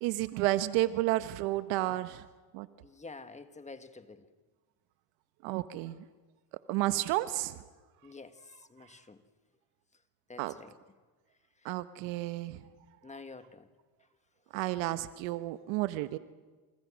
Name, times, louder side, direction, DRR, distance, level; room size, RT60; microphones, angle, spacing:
voice 1, 0.0-2.3 2.5-2.7 5.4-6.1 6.7-7.6 10.4-10.6 11.6-12.6 14.5-16.2, right 17 dB, 75° right, 12 dB, 1.2 m, -31 dB
voice 2, 2.8-4.3 8.0-8.4 8.7-9.2 10.3-10.7 13.0-13.7, left 3 dB, 15° left, 9 dB, 1.7 m, -48 dB
29.5 x 28.0 x 6.3 m, 1.4 s
supercardioid pair, 105°, 47 cm